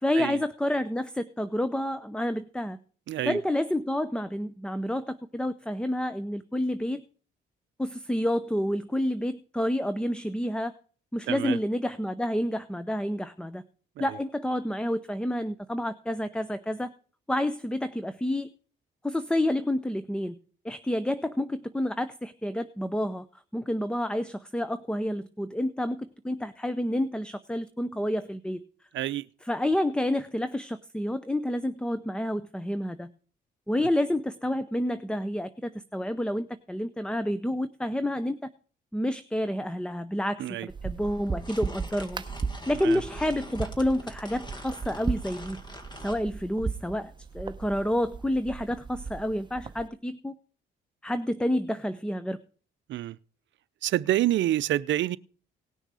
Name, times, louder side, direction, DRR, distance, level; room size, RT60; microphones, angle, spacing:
voice 1, 0.0-2.8 3.3-7.0 7.8-10.7 11.1-13.6 14.0-16.9 17.3-18.5 19.0-20.4 20.6-23.3 23.5-28.6 29.4-33.1 33.7-38.4 38.9-42.2 42.7-45.6 46.0-50.3 51.0-52.4, left 1 dB, 5° left, 0.6 m, -29 dB
voice 2, 3.1-3.4 11.3-11.6 14.0-14.1 28.9-29.3 40.4-40.7 42.8-43.0 52.9-53.2 53.8-55.2, right 13 dB, 70° right, 0.6 m, -27 dB
sound 1, 40.7-49.9, right 5 dB, 25° right, 0.8 m, -37 dB
sound 2, 41.0-46.2, left 1 dB, 20° left, 1.8 m, -45 dB
18.5 x 6.4 x 4.8 m
cardioid pair, 90°, 20 cm